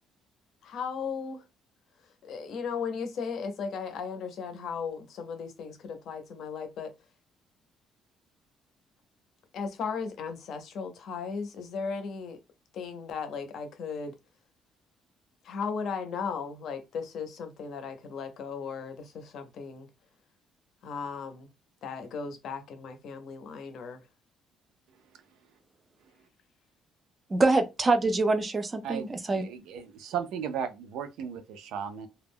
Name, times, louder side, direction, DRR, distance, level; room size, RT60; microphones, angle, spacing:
voice 1, 0.6-1.4 2.2-6.9 9.5-12.4 12.7-14.2 15.4-19.9 20.8-21.5 21.8-24.0, left 5 dB, 55° left, 0.5 m, -36 dB
voice 2, 27.3-29.4, right 3 dB, 20° right, 0.4 m, -25 dB
voice 3, 28.8-32.1, right 8 dB, 85° right, 0.5 m, -36 dB
2.2 x 2.0 x 3.5 m
cardioid pair, 165°, 0 cm